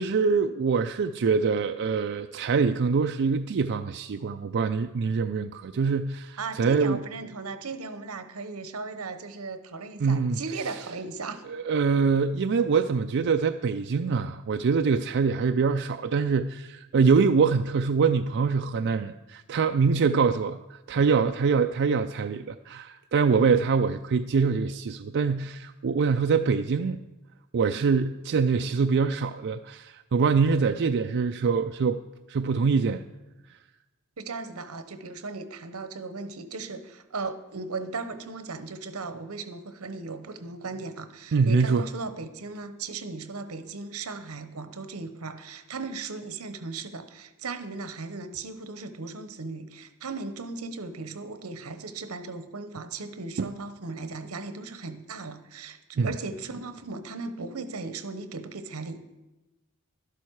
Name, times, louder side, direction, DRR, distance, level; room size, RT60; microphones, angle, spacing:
voice 1, 0.0-7.0 10.0-10.4 11.5-27.0 27.5-32.0 32.3-33.0 41.3-41.8 53.4-53.5 56.0-56.1, right 5 dB, 55° right, 7 dB, 0.4 m, -24 dB
voice 2, 6.4-11.4 34.2-59.0, right 3 dB, 85° right, 11 dB, 1.0 m, -37 dB
12.5 x 11.5 x 4.7 m, 1.0 s
head